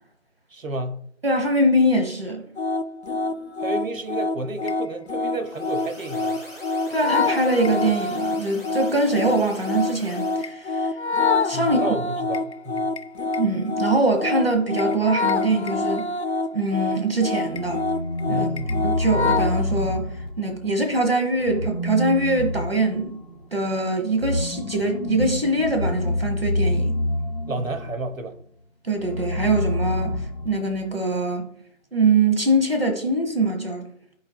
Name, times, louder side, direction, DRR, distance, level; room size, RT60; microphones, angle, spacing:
voice 1, 0.5-1.0 3.6-6.4 11.5-12.9 18.3-18.7 27.5-28.4, right 2 dB, 80° right, 1.1 m, -31 dB
voice 2, 1.2-2.4 6.9-10.9 11.4-11.8 13.4-16.1 16.5-17.8 18.3-18.5 18.8-20.1 20.4-23.2 23.5-27.0 28.8-30.2 30.4-31.5 31.9-33.9, right 2 dB, 50° right, 1.1 m, -23 dB
sound 1, 2.6-19.6, left 3 dB, 60° left, 0.5 m, -26 dB
sound 2, 5.4-10.5, left 1 dB, 5° right, 1.9 m, -43 dB
sound 3, 17.4-20.7 21.4-28.0 29.0-30.9, left 1 dB, 35° left, 0.9 m, -27 dB
12.5 x 4.3 x 2.2 m
figure-of-eight pair, 175°, 39 cm